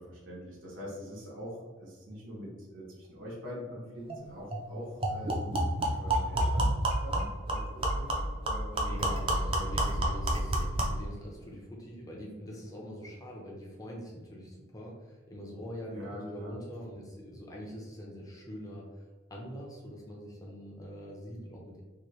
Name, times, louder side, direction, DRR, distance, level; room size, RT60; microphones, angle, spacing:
voice 1, 0.0-5.7 6.0-8.7 10.5-10.7 15.8-16.5, equal, 75° right, -5 dB, 0.9 m, -44 dB
sound 1, 4.1-4.2 4.5-4.6 5.0-11.0, right 1 dB, 25° right, 0.4 m, -29 dB
voice 2, 8.7-18.9 19.3-21.8, equal, 15° left, -3 dB, 0.6 m, -43 dB
2.9 x 2.8 x 3.1 m, 1.3 s
head